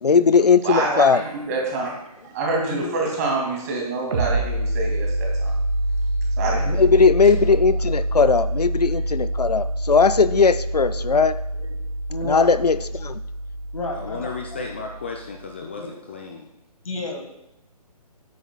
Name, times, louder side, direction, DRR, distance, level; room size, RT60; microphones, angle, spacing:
voice 1, 0.0-1.2 6.7-11.3 12.3-13.2, left 5 dB, 80° left, 14 dB, 0.5 m, -18 dB
voice 2, 0.6-1.9 2.2-5.5 6.4-6.8, right 3 dB, 25° right, 0 dB, 2.3 m, -26 dB
sound 1, 4.1-15.4, right 1 dB, 40° right, 1.7 m, -26 dB
voice 3, 6.7-7.1 7.5-8.1 8.8-9.6 10.7-11.0 11.5-11.7 12.1-12.6 13.0-13.1 13.7-14.6 15.6-15.9 16.8-17.3, left 1 dB, 60° left, 2 dB, 1.6 m, -33 dB
voice 4, 14.0-16.5, left 4 dB, 20° left, 2 dB, 0.4 m, -34 dB
12.5 x 9.3 x 2.3 m, 0.87 s
figure-of-eight pair, 140°, 20 cm